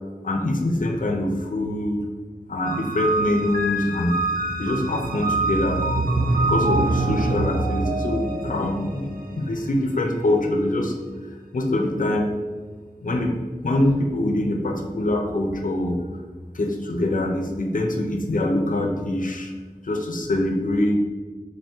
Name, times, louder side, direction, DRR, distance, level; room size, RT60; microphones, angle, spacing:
voice 1, 0.2-2.0 2.5-4.1 4.6-5.8 6.4-10.9 11.5-12.3 13.0-16.0 16.5-19.5 19.8-21.0, left 1 dB, 65° left, 2 dB, 0.6 m, -24 dB
sound 1, 2.6-9.9, right 2 dB, 90° right, 0.4 m, -25 dB
3.5 x 3.3 x 4.4 m, 1.4 s
wide cardioid pair, 50°, 15 cm